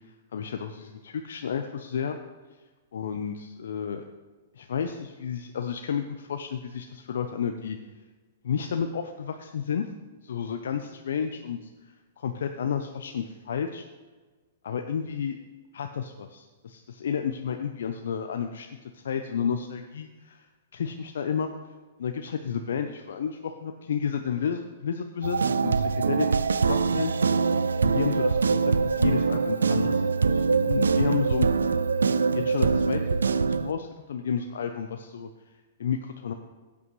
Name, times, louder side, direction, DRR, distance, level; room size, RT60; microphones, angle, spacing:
voice 1, 0.3-2.2 2.9-4.0 4.5-7.8 8.4-9.9 10.2-13.8 14.6-15.4 15.7-20.5 20.7-21.5 22.0-27.1 27.8-30.0 30.3-31.5 32.3-33.0 33.4-35.3 35.8-36.3, left 7 dB, 70° left, 6 dB, 0.6 m, -31 dB
sound 1, 25.2-33.7, right 5 dB, 85° right, 0.3 m, -23 dB
15.5 x 8.5 x 3.2 m, 1.3 s
hypercardioid pair, 115°, 0 cm